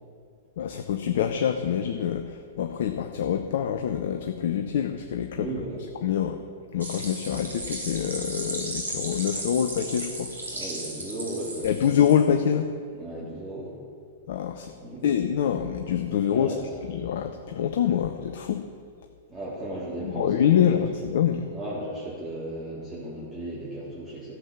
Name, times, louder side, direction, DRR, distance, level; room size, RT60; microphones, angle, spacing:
voice 1, 0.6-5.5 6.0-6.4 6.7-10.3 11.6-12.7 14.3-14.7 15.0-16.5 16.8-18.7 20.0-21.5, left 9 dB, 60° left, 6 dB, 0.7 m, -25 dB
voice 2, 5.3-5.9 10.5-11.9 12.9-13.8 14.8-15.0 16.3-16.6 19.3-20.8 21.5-24.4, right 1 dB, 10° right, -10 dB, 3.4 m, -35 dB
sound 1, 6.8-12.3, right 2 dB, 80° right, 2.7 m, -35 dB
13.0 x 7.5 x 7.1 m, 2.3 s
figure-of-eight pair, 100°, 0 cm